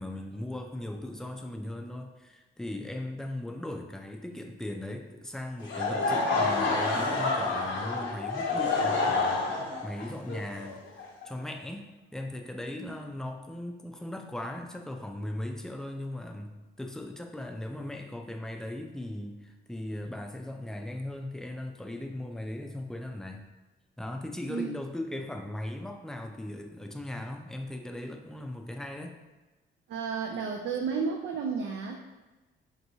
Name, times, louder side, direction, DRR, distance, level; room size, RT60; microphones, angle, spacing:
voice 1, 0.0-9.5 9.8-23.5 24.0-29.2, left 1 dB, 5° left, 3 dB, 0.4 m, -38 dB
Laughter / Crowd, 5.6-11.5, left 3 dB, 70° left, 0.8 m, -28 dB
voice 2, 29.9-32.0, right 5 dB, 70° right, 2 dB, 0.4 m, -32 dB
4.5 x 2.9 x 2.7 m, 1.2 s
cardioid pair, 90°, 20 cm